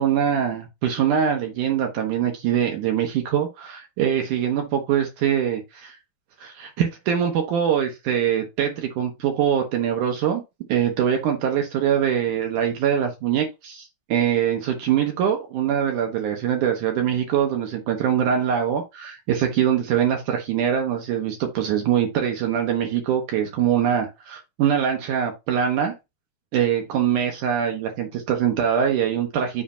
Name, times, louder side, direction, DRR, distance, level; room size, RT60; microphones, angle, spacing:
voice 1, 0.0-6.0 6.4-10.4 10.7-25.9 26.5-29.6, right 9 dB, 70° right, 2.1 m, -23 dB
7.4 x 2.6 x 5.6 m
omnidirectional pair, 4.4 m